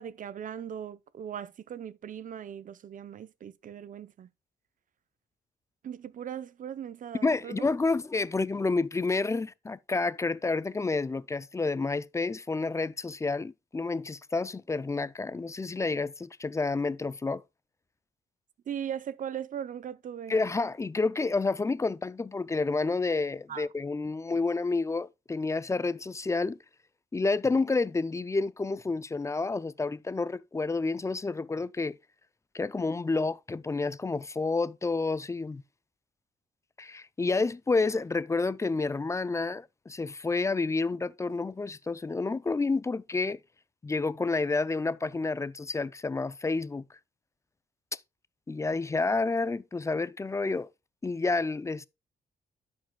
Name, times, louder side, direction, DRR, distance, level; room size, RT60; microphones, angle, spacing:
voice 1, 0.0-4.3 5.8-7.7 18.7-20.3 23.5-23.7, right 9 dB, 50° right, 0.6 m, -39 dB
voice 2, 7.2-17.4 20.3-26.6 27.1-32.0 32.5-35.6 36.8-43.4 43.8-46.9 47.9-48.0 48.5-50.7 51.0-51.9, left 3 dB, 15° left, 0.4 m, -29 dB
12.5 x 5.3 x 2.2 m
cardioid pair, 95°, 17 cm